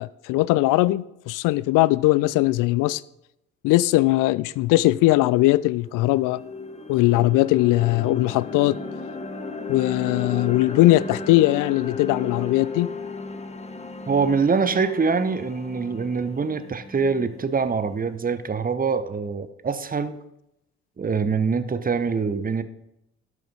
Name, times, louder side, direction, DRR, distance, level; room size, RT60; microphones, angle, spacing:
voice 1, 0.0-3.0 3.6-6.4 6.9-8.8 9.7-12.9, left 18 dB, 60° left, 20 dB, 0.5 m, -20 dB
sound 1, 5.0-5.1 5.5-17.6, left 3 dB, 20° left, 1.4 m, -35 dB
voice 2, 14.1-20.2 21.0-22.6, right 5 dB, 25° right, 12 dB, 1.0 m, -24 dB
12.0 x 6.5 x 5.3 m, 0.82 s
figure-of-eight pair, 45°, 36 cm